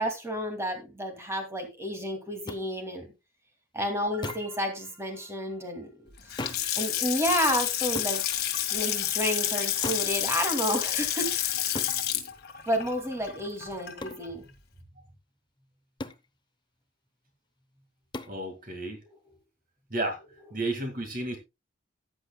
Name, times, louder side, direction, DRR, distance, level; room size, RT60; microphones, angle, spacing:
voice 1, 0.0-3.1 3.7-5.9 6.8-8.2 8.7-11.6 12.7-14.4, equal, 15° right, 2.4 m, -30 dB
sound 1, 2.5-2.6 4.2-4.6 6.4-6.7 7.9-8.2 9.8-10.1 11.7-12.0 14.0-14.2 16.0-16.3 18.1-18.4, left 2 dB, 20° left, 0.7 m, -36 dB
Water tap faucet / Sink (filling or washing) / Splash splatter, 6.2-14.3, left 11 dB, 50° left, 1.9 m, -29 dB
voice 2, 18.3-19.0 19.9-20.2 20.5-21.4, right 2 dB, 45° right, 2.0 m, -32 dB
14.0 x 9.8 x 2.3 m
head